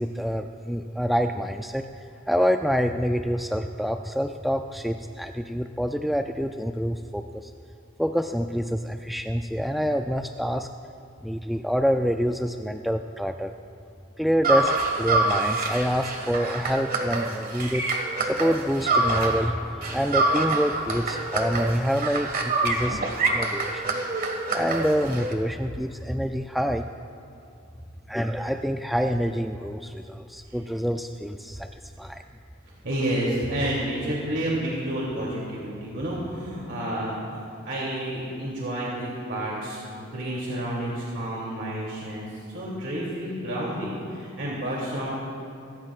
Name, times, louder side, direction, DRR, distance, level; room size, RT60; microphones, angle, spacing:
voice 1, 0.0-1.9 2.3-7.5 8.0-10.7 11.2-13.5 14.2-17.9 18.2-23.0 23.3-23.9 24.5-26.9 28.1-31.7 32.0-32.2, equal, ahead, 5 dB, 0.3 m, -26 dB
sound 1, 14.4-19.5 19.8-25.3, right 2 dB, 45° right, 1.6 m, -26 dB
voice 2, 32.8-42.3 42.5-45.2, right 1 dB, 65° right, -5 dB, 2.8 m, -30 dB
26.0 x 15.0 x 2.4 m, 2.8 s
head